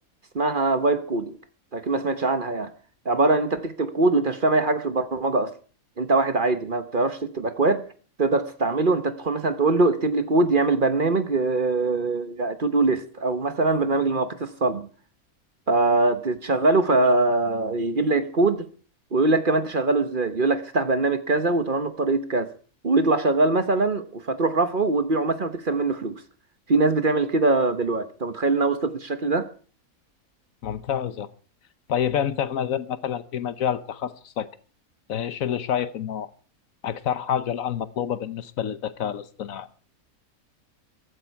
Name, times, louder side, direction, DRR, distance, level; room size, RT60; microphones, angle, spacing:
voice 1, 0.3-1.4 1.7-2.7 3.0-5.5 6.0-7.8 8.2-14.9 15.7-18.7 19.1-22.5 22.8-26.2 26.7-29.5, right 3 dB, 40° right, 1.1 m, -22 dB
voice 2, 30.6-31.3 31.9-34.5 35.1-36.3 36.8-39.7, left 9 dB, 75° left, 1.3 m, -28 dB
15.0 x 13.5 x 4.6 m
omnidirectional pair, 1.5 m